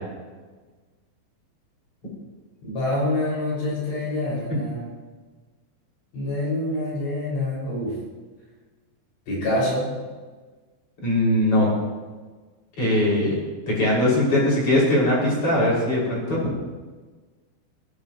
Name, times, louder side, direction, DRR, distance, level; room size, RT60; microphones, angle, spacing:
voice 1, 2.6-4.9 6.1-7.9 9.3-9.9, left 1 dB, 65° left, -5 dB, 8.3 m, -26 dB
voice 2, 11.0-11.7 12.8-13.4 13.7-16.6, left 1 dB, 30° left, -4 dB, 6.8 m, -20 dB
19.0 x 17.5 x 3.2 m, 1.3 s
omnidirectional pair, 5.3 m